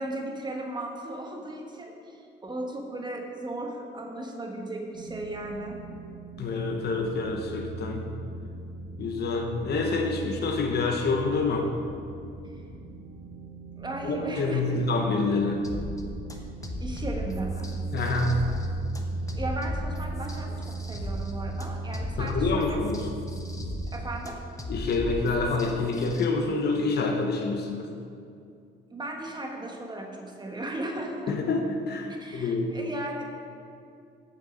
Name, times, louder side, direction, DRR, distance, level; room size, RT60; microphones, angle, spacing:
voice 1, 0.0-5.8 12.4-12.7 13.8-14.8 16.8-17.7 19.4-22.8 23.9-24.4 28.9-31.4 32.2-33.2, right 1 dB, 20° right, 1 dB, 1.3 m, -36 dB
sound 1, 4.9-23.9, right 2 dB, 75° right, 1.2 m, -37 dB
voice 2, 6.4-8.2 9.0-11.7 14.0-15.6 17.9-18.4 22.2-23.0 24.7-27.9 31.3-32.7, left 3 dB, 55° left, 2 dB, 1.0 m, -27 dB
sound 2, 15.6-26.3, left 1 dB, 15° left, 1.0 m, -37 dB
8.1 x 6.4 x 5.1 m, 2.5 s
cardioid pair, 90°, 20 cm